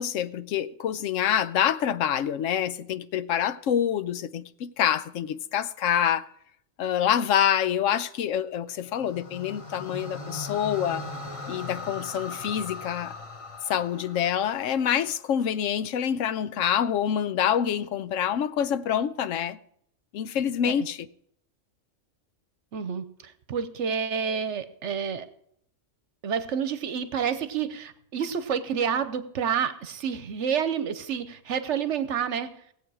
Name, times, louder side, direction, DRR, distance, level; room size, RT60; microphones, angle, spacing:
voice 1, 0.0-6.3 6.8-11.0 11.5-13.1 13.7-19.6 20.1-21.1, left 9 dB, 90° left, 1.0 m, -26 dB
sound 1, 8.8-15.1, left 3 dB, 25° left, 1.3 m, -39 dB
voice 2, 22.7-25.3 26.2-32.5, right 7 dB, 70° right, 1.2 m, -29 dB
18.0 x 8.0 x 4.8 m
omnidirectional pair, 1.3 m